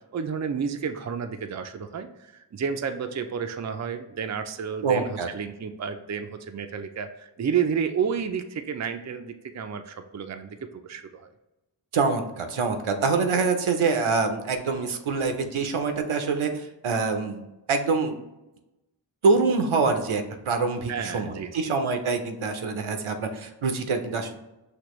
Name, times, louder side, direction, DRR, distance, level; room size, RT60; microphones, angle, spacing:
voice 1, 0.1-11.3 20.9-21.7, right 6 dB, 35° right, 7 dB, 0.5 m, -31 dB
voice 2, 4.8-5.3 11.9-17.4 17.7-18.1 19.2-24.4, right 4 dB, 85° right, 6 dB, 0.7 m, -25 dB
6.0 x 2.9 x 3.0 m, 0.97 s
wide cardioid pair, 55°, 48 cm